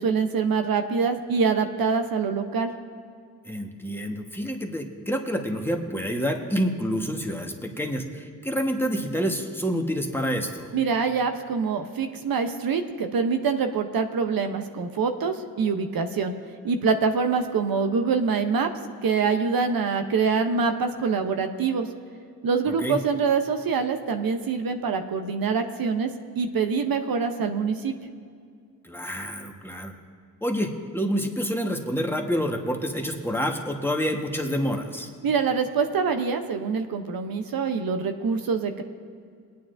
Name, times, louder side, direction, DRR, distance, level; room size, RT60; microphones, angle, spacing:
voice 1, 0.0-2.7 10.7-16.3 16.6-18.7 19.0-21.9 22.4-27.9 35.2-38.8, right 5 dB, 65° right, 7 dB, 0.8 m, -25 dB
voice 2, 3.4-10.7 22.7-23.0 28.8-29.9 30.4-35.1, equal, 5° left, 2 dB, 1.2 m, -28 dB
21.0 x 9.4 x 2.6 m, 2.2 s
cardioid pair, 65°, 37 cm